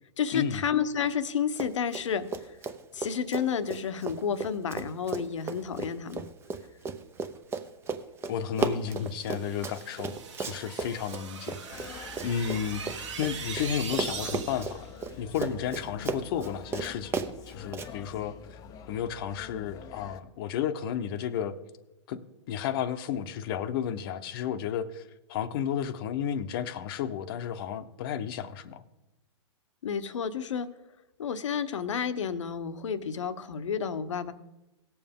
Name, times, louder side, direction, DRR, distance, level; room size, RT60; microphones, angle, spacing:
voice 1, 0.2-2.6 2.9-6.2 29.8-30.7 31.2-34.3, left 7 dB, 80° left, 11 dB, 0.9 m, -31 dB
Run, 1.5-2.1 2.3-13.7 13.9-17.9, right 4 dB, 15° right, 0.7 m, -35 dB
voice 2, 8.3-14.9 15.2-18.3 18.9-21.5 22.1-22.2 22.5-28.8, left 9 dB, 50° left, 11 dB, 0.8 m, -33 dB
sound 1, 8.9-14.9, right 6 dB, 75° right, 1.5 m, -41 dB
sound 2, 11.7-20.2, left 7 dB, 25° left, 0.6 m, -47 dB
18.0 x 7.1 x 3.7 m, 0.97 s
hypercardioid pair, 130°, 16 cm